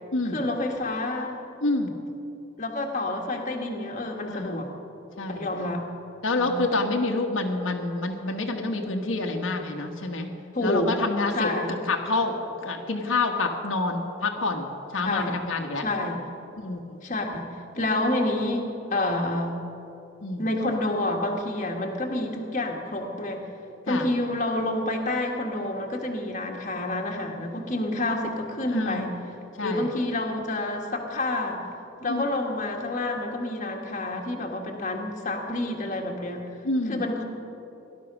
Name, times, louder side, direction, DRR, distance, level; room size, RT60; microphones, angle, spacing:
voice 1, 0.3-1.4 2.6-4.7 5.4-5.9 6.4-6.6 10.5-10.9 11.3-11.8 15.0-15.4 15.8-16.2 17.0-17.5 17.8-19.6 20.4-23.5 23.9-29.1 29.6-31.6 32.0-36.4 36.9-37.2, left 2 dB, 40° left, 1 dB, 1.6 m, -28 dB
voice 2, 1.6-1.9 4.3-4.7 5.2-5.5 6.2-10.3 10.6-11.5 11.9-15.8 16.6-17.0 20.2-20.4 23.9-24.1 28.7-29.1 29.6-29.9 32.1-32.2 36.6-37.0, left 2 dB, 75° left, 2 dB, 1.3 m, -28 dB
17.5 x 12.0 x 6.1 m, 2.9 s
head